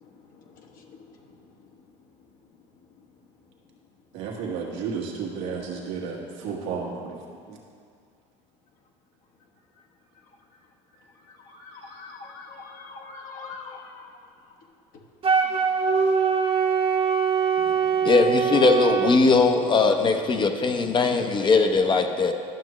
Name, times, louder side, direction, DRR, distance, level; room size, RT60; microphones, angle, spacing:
voice 1, 0.0-1.3 11.3-14.2, left 4 dB, 60° left, 1 dB, 1.1 m, -44 dB
voice 2, 4.1-7.1 7.5-7.6, right 5 dB, 80° right, -2 dB, 1.5 m, -32 dB
Wind instrument woodwind instrument, 15.2-19.2, right 6 dB, 35° right, 0.9 m, -22 dB
voice 3, 18.0-22.3, left 4 dB, 30° left, 6 dB, 0.7 m, -20 dB
11.5 x 6.1 x 3.1 m, 2.2 s
supercardioid pair, 90°, 16 cm